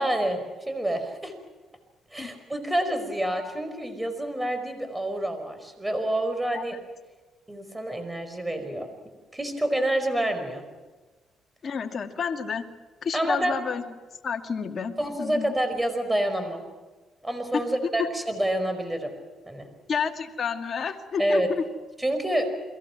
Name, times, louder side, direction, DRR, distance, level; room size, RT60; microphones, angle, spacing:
voice 1, 0.0-1.3 2.1-6.8 7.5-8.9 9.3-10.6 13.1-13.6 15.0-16.6 17.2-19.1 19.5-19.7 21.2-21.5 22.0-22.5, right 1 dB, 10° right, 8 dB, 5.1 m, -28 dB
voice 2, 11.6-12.7 13.0-13.8 14.2-15.5 17.5-17.6 18.0-18.1 19.9-21.6, left 6 dB, 50° left, 4 dB, 2.3 m, -30 dB
30.0 x 22.5 x 6.1 m, 1.3 s
cardioid pair, 90°, 0 cm